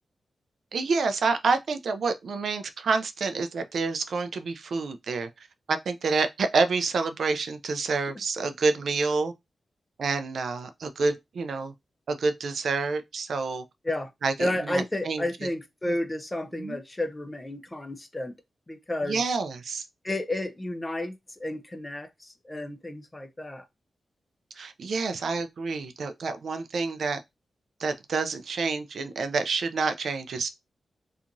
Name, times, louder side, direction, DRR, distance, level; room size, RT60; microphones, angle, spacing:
voice 1, 0.7-5.3 5.7-9.3 10.0-11.7 12.1-13.6 14.2-15.3 16.5-16.8 19.0-19.8 24.6-27.2 27.8-30.5, right 4 dB, 65° right, 0.3 m, -28 dB
voice 2, 14.4-18.3 18.7-19.2 20.0-23.7, left 1 dB, 15° left, 0.4 m, -31 dB
2.8 x 2.4 x 2.5 m
wide cardioid pair, 150°, 0 cm